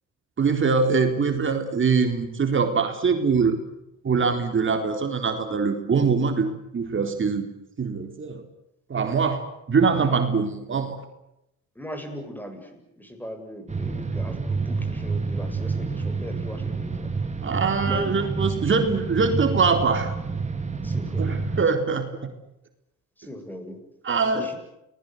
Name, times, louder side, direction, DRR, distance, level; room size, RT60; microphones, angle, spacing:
voice 1, 0.4-3.6 4.0-6.5 6.7-7.5 7.8-8.4 8.9-11.0 17.4-20.1 21.2-22.1 24.0-24.5, right 5 dB, 40° right, 5 dB, 4.1 m, -23 dB
voice 2, 11.7-17.1 17.8-18.1 20.8-21.2 23.2-23.8 24.3-24.6, left 1 dB, 5° left, 6 dB, 7.9 m, -38 dB
sound 1, 13.7-21.6, right 4 dB, 25° right, 3.4 m, -28 dB
29.0 x 21.0 x 8.2 m, 0.85 s
cardioid pair, 90°, 30 cm